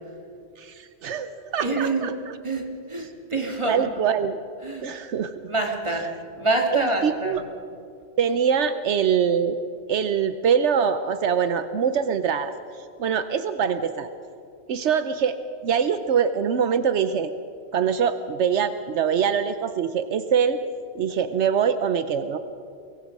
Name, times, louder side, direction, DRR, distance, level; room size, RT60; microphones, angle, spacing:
voice 1, 0.6-2.4 3.0-3.1 3.6-4.4 4.8-5.3 5.9-6.0 6.7-7.4 8.2-9.6 9.9-14.1 14.7-17.3 17.7-20.6 20.9-22.4, right 7 dB, 80° right, 11 dB, 1.0 m, -24 dB
voice 2, 1.6-2.1 2.4-3.9 4.6-4.9 5.5-6.1 6.4-7.4, right 2 dB, 25° right, 1 dB, 2.5 m, -26 dB
24.5 x 22.0 x 5.3 m, 2.5 s
omnidirectional pair, 1.2 m